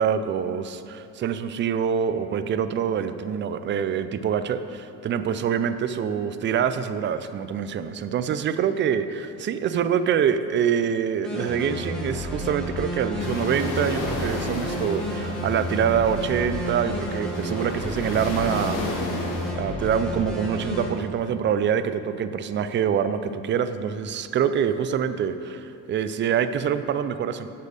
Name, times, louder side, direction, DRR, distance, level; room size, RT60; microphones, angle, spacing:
voice 1, 0.0-19.2 19.5-27.5, right 8 dB, 30° right, 11 dB, 0.4 m, -25 dB
sound 1, 11.2-20.9, equal, ahead, 1.9 m, -31 dB
sound 2, 13.2-19.5, left 2 dB, 60° left, 1.6 m, -33 dB
7.9 x 5.5 x 6.4 m, 2.9 s
cardioid pair, 115°, 36 cm